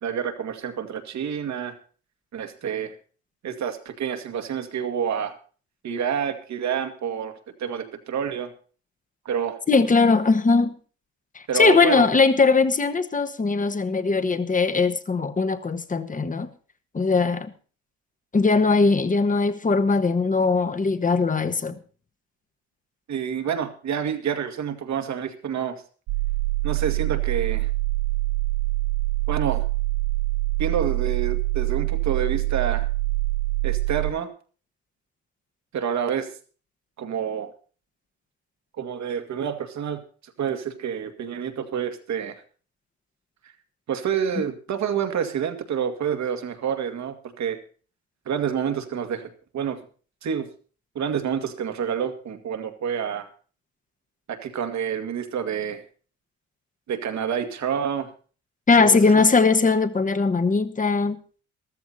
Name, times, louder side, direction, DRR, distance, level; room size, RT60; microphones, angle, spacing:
voice 1, 0.0-1.8 2.3-2.9 3.4-5.3 5.8-8.5 9.3-9.6 11.5-12.1 23.1-25.8 26.6-27.7 29.3-29.7 30.6-32.9 33.6-34.3 35.7-36.3 37.0-37.5 38.8-40.0 40.4-42.4 43.9-47.6 48.3-49.8 50.2-50.5 51.0-53.3 54.3-55.8 56.9-58.1 58.8-59.2, right 8 dB, 65° right, 2.1 m, -28 dB
voice 2, 9.7-10.7 11.3-16.5 16.9-17.5 18.3-21.8 58.7-61.2, left 4 dB, 25° left, 1.4 m, -20 dB
sound 1, 26.1-34.1, right 21 dB, 90° right, 0.5 m, -25 dB
14.0 x 13.5 x 4.2 m
cardioid pair, 90°, 30 cm